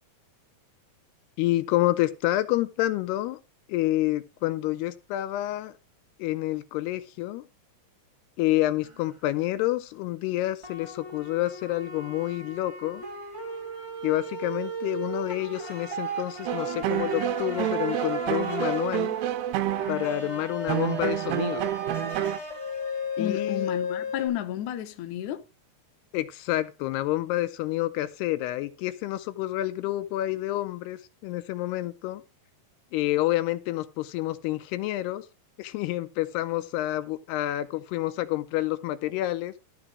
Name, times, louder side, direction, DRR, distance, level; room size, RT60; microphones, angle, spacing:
voice 1, 1.4-3.4 3.7-5.7 6.2-7.4 8.4-13.0 14.0-19.2 19.9-21.7 23.2-23.7 26.1-32.2 32.9-35.3 35.6-39.5, left 16 dB, 85° left, 2.7 m, -28 dB
sound 1, 8.8-9.0 10.6-24.3, left 1 dB, 10° right, 2.5 m, -35 dB
sound 2, 16.5-22.4, right 13 dB, 85° right, 2.9 m, -29 dB
voice 2, 23.2-25.4, left 11 dB, 65° left, 2.1 m, -32 dB
13.0 x 5.0 x 6.0 m
omnidirectional pair, 4.7 m